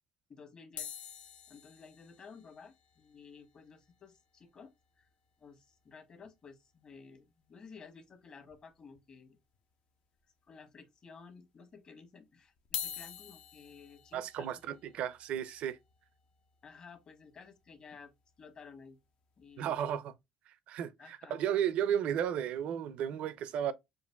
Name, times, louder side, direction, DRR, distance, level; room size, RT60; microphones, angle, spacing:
voice 1, 0.3-0.9 1.5-5.1 5.4-9.4 10.5-14.5 16.6-18.1 18.4-19.0 19.4-19.8 21.0-21.4, left 5 dB, 45° left, 1.4 m, -54 dB
sound 1, 0.8-5.1 5.4-5.5 5.7-5.8 6.2-6.4 7.7-7.8 8.5-9.0 9.5-9.6 10.5-10.6 12.6-18.7 19.2-19.5, left 9 dB, 60° left, 0.7 m, -47 dB
voice 2, 14.1-15.8 19.6-20.1 20.5-23.7, right 9 dB, 70° right, 0.5 m, -34 dB
7.2 x 2.5 x 2.2 m
supercardioid pair, 85°, 2 cm